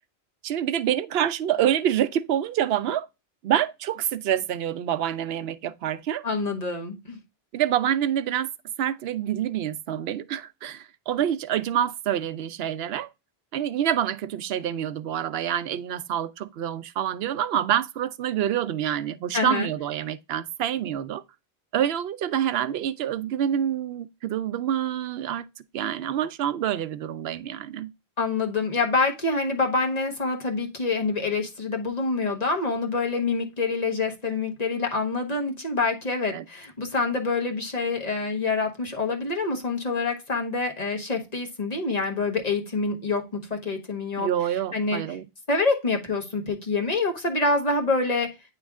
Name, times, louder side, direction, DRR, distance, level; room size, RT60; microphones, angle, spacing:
voice 1, 0.4-3.1 3.4-6.2 7.5-8.5 8.8-13.1 13.5-21.2 21.7-25.5 25.7-27.9 36.3-36.4 44.2-45.3, right 10 dB, 75° right, 0.8 m, -27 dB
voice 2, 6.2-7.2 19.3-19.7 28.2-44.3 44.7-45.0 45.5-48.3, left 3 dB, 40° left, 1.3 m, -26 dB
9.2 x 3.2 x 3.5 m
omnidirectional pair, 1.1 m